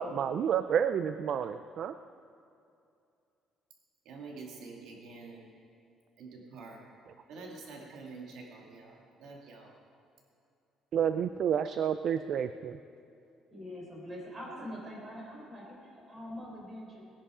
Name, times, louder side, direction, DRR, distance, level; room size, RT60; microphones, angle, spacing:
voice 1, 0.0-1.9 10.9-12.8, right 8 dB, 50° right, 11 dB, 0.4 m, -30 dB
voice 2, 4.0-5.5 6.2-6.8 7.3-9.7, right 3 dB, 65° right, 0 dB, 2.2 m, -47 dB
voice 3, 13.5-17.0, equal, 25° right, -2 dB, 4.0 m, -44 dB
19.5 x 11.0 x 4.9 m, 2.5 s
cardioid pair, 155°, 0 cm